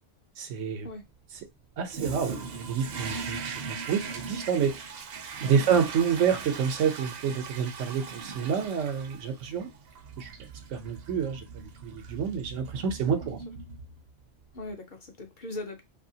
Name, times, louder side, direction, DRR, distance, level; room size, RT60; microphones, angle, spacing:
voice 1, 0.4-0.9 1.8-3.4 3.7-4.8 5.4-9.7 10.2-10.3 10.7-13.4, right 7 dB, 85° right, 1.0 m, -28 dB
Toilet flush, 1.9-14.2, right 5 dB, 60° right, 0.8 m, -40 dB
voice 2, 5.4-5.7 13.3-13.4 14.5-15.8, left 2 dB, 50° left, 0.6 m, -40 dB
2.7 x 2.6 x 2.7 m
omnidirectional pair, 1.2 m